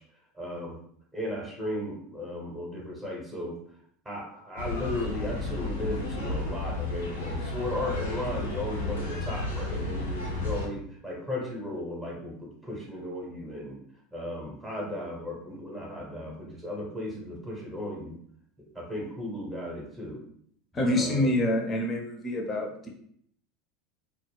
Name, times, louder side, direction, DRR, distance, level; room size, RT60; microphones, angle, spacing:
voice 1, 0.4-0.8 1.1-3.6 4.0-13.8 14.1-18.1 18.6-20.2 20.8-21.3, left 1 dB, 15° right, -4 dB, 0.8 m, -35 dB
sound 1, 4.6-10.7, left 2 dB, 85° left, 0.5 m, -33 dB
voice 2, 20.7-22.9, left 1 dB, 30° left, 1 dB, 0.6 m, -27 dB
2.3 x 2.1 x 3.2 m, 0.65 s
hypercardioid pair, 80°, 0 cm